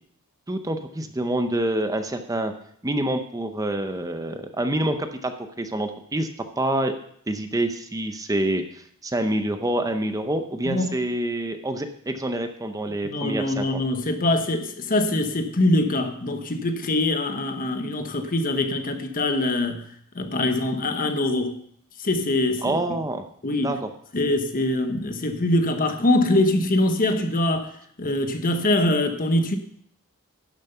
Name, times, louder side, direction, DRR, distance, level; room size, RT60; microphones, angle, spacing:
voice 1, 0.5-2.5 2.8-5.3 5.6-6.3 6.6-6.9 7.3-13.7 22.6-23.3 23.6-23.9, right 1 dB, 15° right, 0.6 m, -27 dB
voice 2, 10.6-11.0 13.0-19.8 20.1-21.6 22.0-22.8 23.4-23.7 24.1-27.7 28.0-29.6, left 1 dB, 40° left, 1.1 m, -23 dB
11.5 x 7.3 x 5.6 m
head